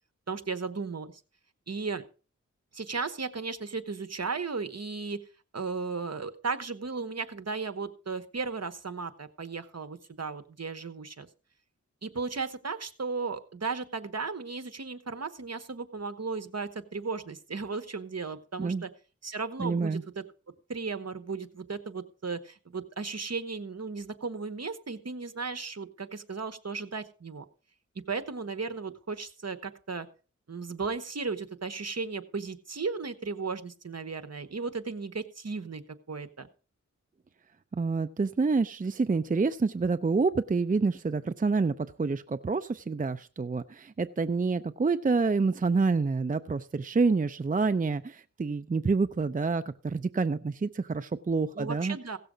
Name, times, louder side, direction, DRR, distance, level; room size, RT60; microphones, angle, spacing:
voice 1, 0.3-1.1 1.7-2.0 2.7-5.2 5.5-11.3 12.0-18.9 19.2-20.2 20.7-27.4 28.1-30.1 30.5-35.8 36.1-36.5 51.5-52.2, right 4 dB, 55° right, 9 dB, 1.1 m, -35 dB
voice 2, 19.6-20.0 37.7-52.0, right 4 dB, 25° right, 11 dB, 0.5 m, -27 dB
16.5 x 6.8 x 5.1 m, 0.37 s
wide cardioid pair, 65°, 30 cm